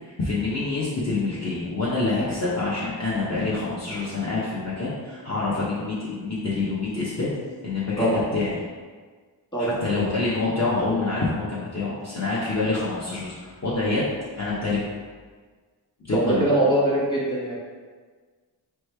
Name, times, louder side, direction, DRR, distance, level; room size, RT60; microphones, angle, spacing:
voice 1, 0.0-7.3 7.6-8.6 9.6-14.8 16.0-16.4, left 3 dB, 40° left, -8 dB, 0.7 m, -26 dB
voice 2, 16.1-17.5, right 1 dB, 10° left, -8 dB, 1.3 m, -22 dB
4.4 x 3.1 x 3.2 m, 1.5 s
wide cardioid pair, 120°, 44 cm